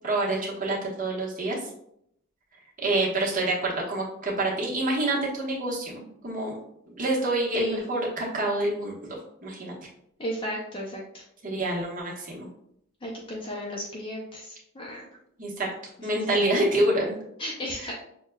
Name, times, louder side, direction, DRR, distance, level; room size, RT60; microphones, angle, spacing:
voice 1, 0.0-1.6 2.8-6.5 6.9-8.9 9.4-9.7 11.4-12.5 15.4-15.7 16.0-17.1 17.8-17.9, right 1 dB, 40° right, -4 dB, 1.1 m, -27 dB
voice 2, 10.2-11.2 13.0-15.1 17.4-17.9, equal, 25° left, -3 dB, 0.5 m, -34 dB
6.5 x 2.2 x 2.2 m, 0.74 s
head